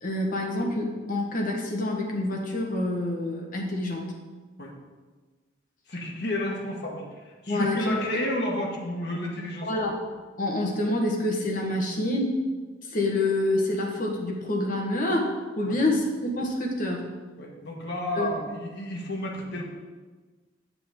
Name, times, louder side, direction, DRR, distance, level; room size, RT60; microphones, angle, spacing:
voice 1, 0.0-4.0 7.5-8.2 9.6-10.0 10.4-12.4 12.8-17.1 18.2-18.3, left 1 dB, 45° left, 0 dB, 1.4 m, -27 dB
voice 2, 5.9-9.7 15.6-15.8 17.4-19.6, left 1 dB, 60° left, -1 dB, 1.6 m, -31 dB
8.5 x 6.8 x 3.8 m, 1.3 s
head